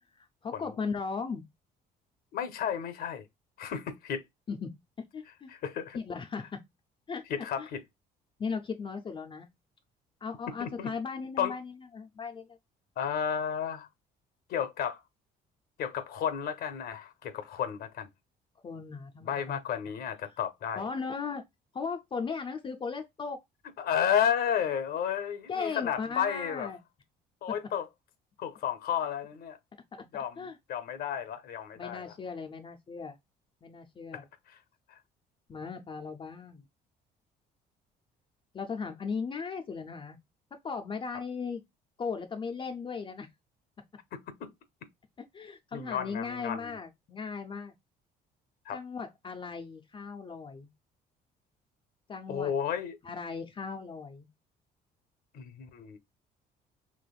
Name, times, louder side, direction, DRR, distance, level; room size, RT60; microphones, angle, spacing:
voice 1, 0.2-1.4 4.5-4.7 5.1-5.5 5.9-6.6 7.1-7.7 8.4-9.5 10.2-12.6 18.6-19.6 20.8-21.4 21.7-23.4 25.5-26.8 30.4-30.6 31.8-33.2 33.6-34.2 35.5-36.6 38.5-40.2 40.5-41.6 42.0-43.3 45.2-47.7 48.7-50.7 52.1-52.5 53.0-54.3, left 5 dB, 30° left, 0.5 m, -37 dB
voice 2, 2.3-3.2 3.6-4.2 5.5-6.0 7.3-7.8 10.6-10.9 11.4-11.6 13.0-13.9 14.5-15.0 15.8-18.1 19.2-20.8 23.8-26.7 27.4-27.9 28.4-29.6 30.1-32.1 34.1-34.6 34.9-35.0 44.1-44.5 45.7-46.7 48.7-48.8 52.3-53.0 55.3-56.0, left 8 dB, 65° left, 0.7 m, -32 dB
3.3 x 2.9 x 2.3 m
cardioid pair, 110°, 17 cm